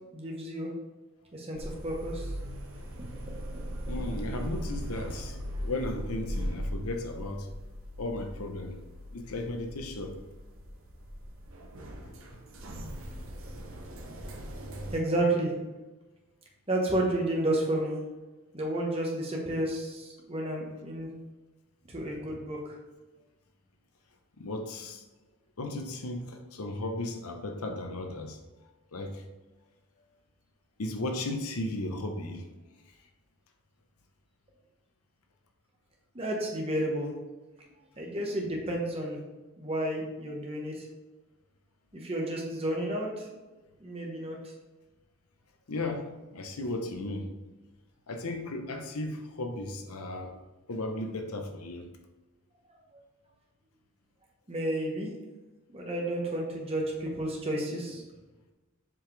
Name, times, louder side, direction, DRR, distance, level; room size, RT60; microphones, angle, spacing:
voice 1, 0.1-0.7 1.3-2.2 3.1-3.9 14.9-15.5 16.7-18.0 18.5-21.1 21.9-22.8 36.1-37.1 38.0-39.2 39.6-40.8 41.9-43.3 43.8-44.4 54.5-55.1 55.7-58.0, right 1 dB, 25° right, -1 dB, 1.3 m, -31 dB
sound 1, 1.5-15.0, equal, 60° right, 1.0 m, -39 dB
voice 2, 3.9-7.5 8.0-8.8 9.1-10.2 12.3-12.4 24.4-25.0 25.6-28.4 28.9-29.2 30.8-32.4 45.7-47.3 48.1-50.3 50.7-51.9, left 2 dB, 80° left, 5 dB, 0.9 m, -35 dB
7.2 x 4.9 x 3.4 m, 1.1 s
head